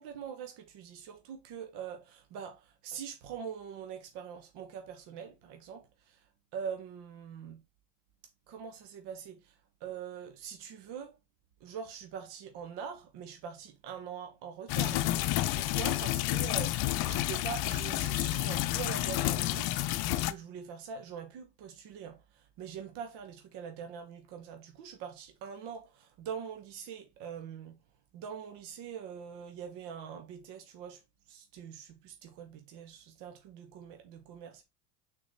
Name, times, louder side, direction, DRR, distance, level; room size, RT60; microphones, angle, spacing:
voice 1, 0.0-6.3 6.5-7.6 8.5-11.2 11.6-16.7 17.0-19.8 20.2-27.8 28.1-34.6, right 7 dB, 55° right, 1.3 m, -43 dB
sound 1, 14.7-20.3, left 15 dB, 50° left, 0.7 m, -30 dB
6.2 x 4.0 x 4.2 m
hypercardioid pair, 85°, 49 cm